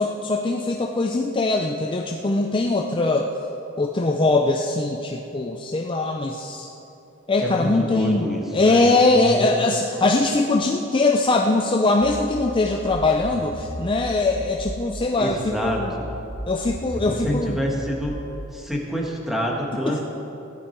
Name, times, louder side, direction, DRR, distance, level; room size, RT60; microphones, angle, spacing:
voice 1, 0.0-3.3 3.8-6.7 7.3-8.3 8.5-15.9 16.5-17.6 19.9-20.0, left 2 dB, 25° left, 2 dB, 0.5 m, -21 dB
voice 2, 7.4-8.8 9.1-9.5 15.2-16.1 17.1-18.2 18.5-20.0, equal, ahead, -1 dB, 1.6 m, -27 dB
sound 1, 12.0-15.0 15.4-18.5, equal, 85° right, 1.9 m, -36 dB
15.0 x 11.0 x 4.6 m, 3.0 s
head